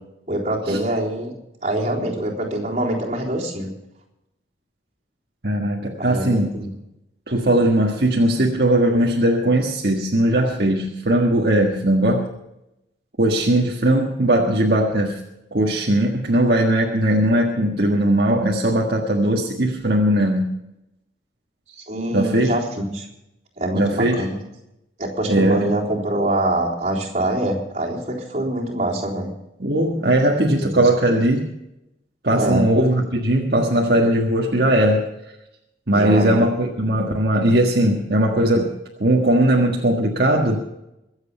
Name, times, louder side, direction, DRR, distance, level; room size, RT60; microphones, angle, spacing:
voice 1, 0.3-1.3 1.6-3.7 6.0-6.7 21.7-23.1 23.6-24.4 25.0-29.3 30.6-30.7 32.3-32.6 35.9-36.4, right 1 dB, 40° right, -3 dB, 3.8 m, -24 dB
voice 2, 5.4-6.5 7.3-12.3 13.2-15.2 15.5-20.5 22.1-22.5 23.7-24.3 25.3-25.7 29.6-31.5 32.2-35.1 35.9-40.6, right 1 dB, 55° right, -1 dB, 1.6 m, -19 dB
23.5 x 8.1 x 5.5 m, 0.86 s
head